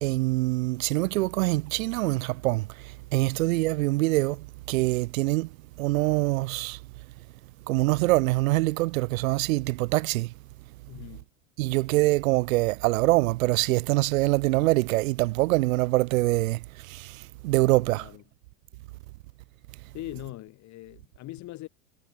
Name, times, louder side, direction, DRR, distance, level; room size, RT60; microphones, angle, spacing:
voice 1, 0.0-5.5 5.8-6.8 7.7-10.3 11.6-18.1, right 20 dB, 75° right, 0.6 m, -24 dB
voice 2, 10.9-11.3 18.0-18.2 19.9-21.7, left 17 dB, 45° left, 1.2 m, -41 dB
hypercardioid pair, 95°, 41 cm